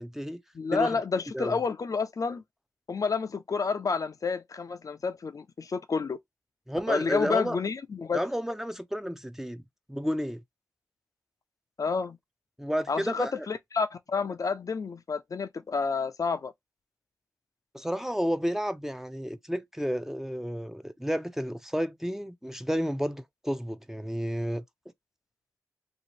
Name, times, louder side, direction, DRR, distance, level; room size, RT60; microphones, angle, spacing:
voice 1, 0.0-0.4 0.7-1.0 1.3-1.6 6.7-7.6 8.1-9.6 9.9-10.4 12.6-13.3 17.7-24.6, equal, 5° right, 0.5 m, -31 dB
voice 2, 0.5-2.4 2.9-6.2 6.9-8.3 11.8-12.2 12.9-16.5, left 5 dB, 60° left, 0.4 m, -30 dB
2.8 x 2.4 x 2.9 m
cardioid pair, 40°, 7 cm